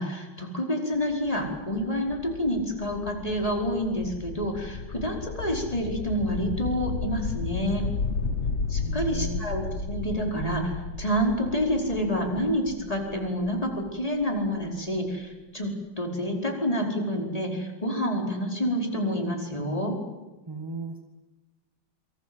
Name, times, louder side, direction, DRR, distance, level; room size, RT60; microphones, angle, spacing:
voice 1, 0.0-7.9 8.7-15.7 16.0-20.0, equal, 15° left, 1 dB, 5.0 m, -28 dB
sound 1, 0.9-14.7, left 4 dB, 40° left, 1.5 m, -34 dB
voice 2, 8.8-9.5 20.5-21.0, right 3 dB, 15° right, 5 dB, 1.9 m, -36 dB
27.5 x 25.0 x 8.0 m, 1.1 s
omnidirectional pair, 2.1 m